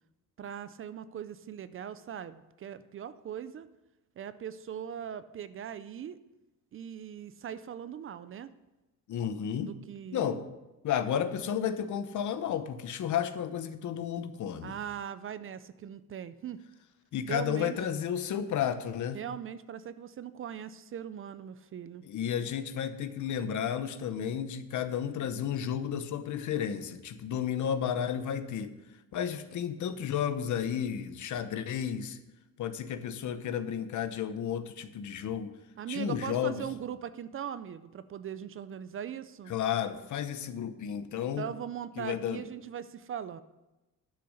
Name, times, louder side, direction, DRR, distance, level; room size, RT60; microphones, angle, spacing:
voice 1, 0.4-3.7 4.2-6.2 6.7-8.5 9.6-10.4 14.6-16.6 17.3-17.9 19.1-22.1 35.8-39.5 41.4-43.4, right 9 dB, 40° right, 14 dB, 0.4 m, -40 dB
voice 2, 9.1-9.7 10.1-10.4 10.8-14.8 17.1-19.2 22.0-28.7 29.1-32.2 32.6-35.5 35.9-36.6 39.5-41.4 42.0-42.4, left 9 dB, 60° left, 11 dB, 0.9 m, -32 dB
11.5 x 6.7 x 6.4 m, 1.0 s
cardioid pair, 175°, 34 cm